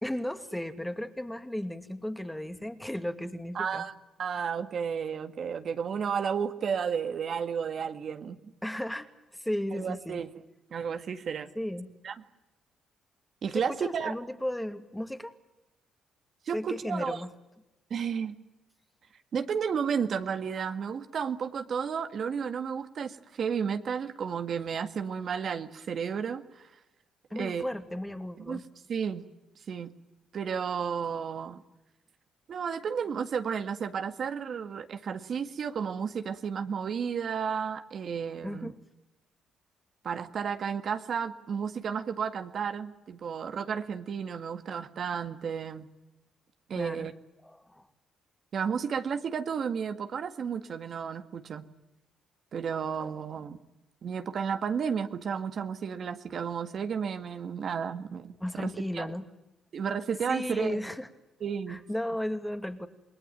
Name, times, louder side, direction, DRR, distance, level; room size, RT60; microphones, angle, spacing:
voice 1, 0.0-3.9 8.6-10.2 11.6-11.9 13.5-15.3 16.5-17.3 27.3-28.6 38.4-38.7 46.7-47.1 47.4-47.8 58.4-59.3 60.3-61.1 61.7-62.9, left 1 dB, 5° left, 8 dB, 2.4 m, -35 dB
voice 2, 3.6-3.9 4.2-8.4 9.8-10.3 10.7-11.5 12.0-12.2 13.4-14.1 16.5-17.2 17.9-18.3 19.3-26.7 27.4-27.6 28.5-28.6 28.9-29.2 29.7-29.9 30.3-31.6 32.5-38.7 40.0-45.9 46.7-47.1 48.5-51.6 52.5-53.6 54.0-59.1 59.7-60.8 61.4-61.8, right 6 dB, 55° right, 8 dB, 1.8 m, -32 dB
28.0 x 20.5 x 9.1 m, 0.96 s
cardioid pair, 90°, 0 cm